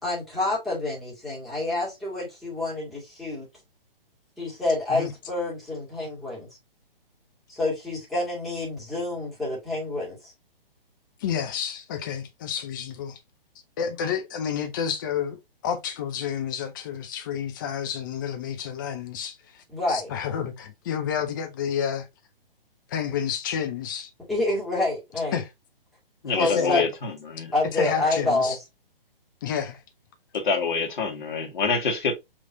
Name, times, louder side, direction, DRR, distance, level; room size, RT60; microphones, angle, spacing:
voice 1, 0.0-3.5 4.4-6.5 7.5-10.3 19.7-20.1 24.3-25.4 26.3-26.8 27.5-28.6, left 2 dB, ahead, 2.0 m, -28 dB
voice 2, 11.2-13.2 13.8-22.1 22.9-24.1 25.3-25.5 26.4-26.9 27.7-28.6 29.4-29.8, left 8 dB, 20° left, 0.6 m, -30 dB
voice 3, 26.2-27.5 30.3-32.2, left 4 dB, 55° left, 1.6 m, -26 dB
5.5 x 3.1 x 2.6 m
figure-of-eight pair, 130°, 29 cm